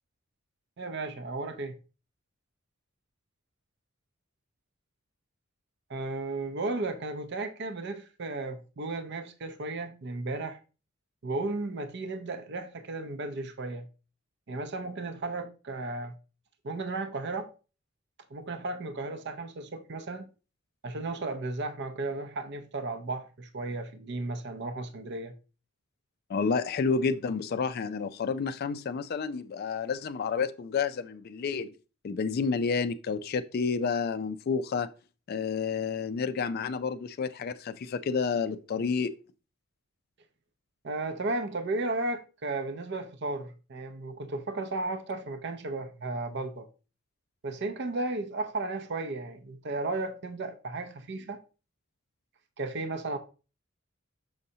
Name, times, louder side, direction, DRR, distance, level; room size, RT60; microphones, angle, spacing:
voice 1, 0.8-1.8 5.9-10.6 11.2-13.9 14.5-16.1 16.6-17.5 18.3-20.3 20.8-25.3 40.8-46.7 47.4-51.4 52.6-53.2, right 2 dB, 55° right, 0.6 m, -34 dB
voice 2, 26.3-31.7 32.0-34.9 35.3-39.1, left 5 dB, 50° left, 0.3 m, -30 dB
6.4 x 5.4 x 2.7 m
head